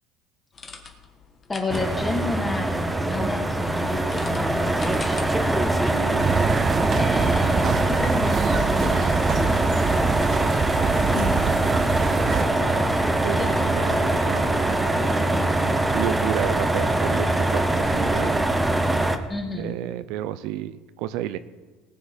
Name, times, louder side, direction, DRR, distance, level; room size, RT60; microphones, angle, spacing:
sound 1, 0.5-15.8, left 5 dB, 30° left, 1.6 m, -41 dB
voice 1, 1.5-5.6 6.9-11.6 19.3-19.7, left 2 dB, 15° left, 2 dB, 2.1 m, -31 dB
sound 2, 1.7-19.2, right 1 dB, 10° right, 0.8 m, -23 dB
voice 2, 5.8-6.3 12.0-18.4 19.5-21.4, right 13 dB, 75° right, 13 dB, 0.6 m, -32 dB
sound 3, 6.2-12.4, right 7 dB, 30° right, 0.5 m, -26 dB
19.5 x 7.1 x 5.2 m, 1.4 s
cardioid pair, 140°, 0 cm